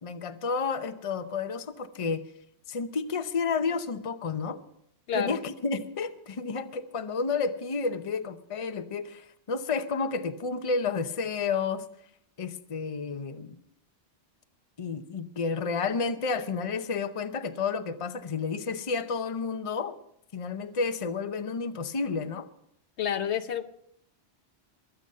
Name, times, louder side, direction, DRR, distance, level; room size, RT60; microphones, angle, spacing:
voice 1, 0.0-2.3 2.7-4.6 5.1-11.9 12.4-13.6 14.8-20.0 20.3-22.5, left 4 dB, 35° left, 10 dB, 0.8 m, -31 dB
voice 2, 23.0-23.7, left 8 dB, 85° left, 9 dB, 1.2 m, -29 dB
22.5 x 8.0 x 5.5 m, 0.72 s
omnidirectional pair, 1.1 m